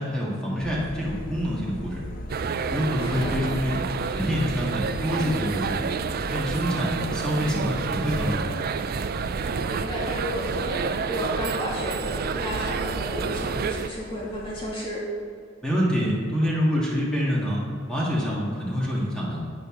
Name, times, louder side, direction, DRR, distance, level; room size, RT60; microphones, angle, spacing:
voice 1, 0.0-2.0 2.7-5.8 6.3-8.4 15.6-17.6 17.9-19.4, equal, 5° left, -6 dB, 1.8 m, -26 dB
sound 1, 0.6-14.8, left 1 dB, 45° left, 0.7 m, -40 dB
sound 2, 2.3-13.9, right 5 dB, 50° right, 0.4 m, -29 dB
voice 2, 3.0-3.3 9.3-15.0, equal, 25° left, -5 dB, 2.3 m, -33 dB
12.0 x 8.2 x 3.8 m, 2.4 s
head